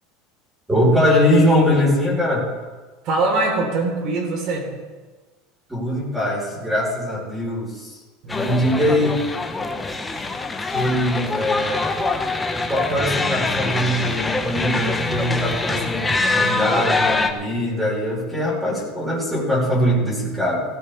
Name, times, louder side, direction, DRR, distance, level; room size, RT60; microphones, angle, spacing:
voice 1, 0.7-2.4 5.7-8.0 8.3-9.1 9.5-9.7 10.7-11.9 12.7-20.6, equal, 5° right, -5 dB, 4.4 m, -21 dB
voice 2, 3.0-4.7 8.2-9.0, right 2 dB, 45° right, 1 dB, 3.9 m, -23 dB
sound 1, 8.3-17.3, left 3 dB, 10° left, 0.9 m, -24 dB
17.0 x 16.5 x 3.5 m, 1.3 s
supercardioid pair, 155°, 0 cm